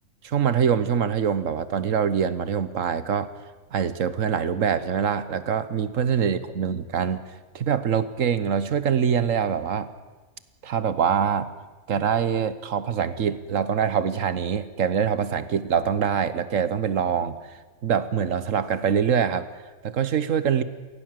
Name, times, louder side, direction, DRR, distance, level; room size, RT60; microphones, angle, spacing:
voice 1, 0.2-3.3 3.7-7.2 7.5-9.9 10.6-11.5 11.9-17.6 17.8-19.5 19.8-20.6, right 7 dB, 70° right, 14 dB, 1.4 m, -24 dB
23.0 x 16.5 x 7.6 m, 1.3 s
omnidirectional pair, 1.4 m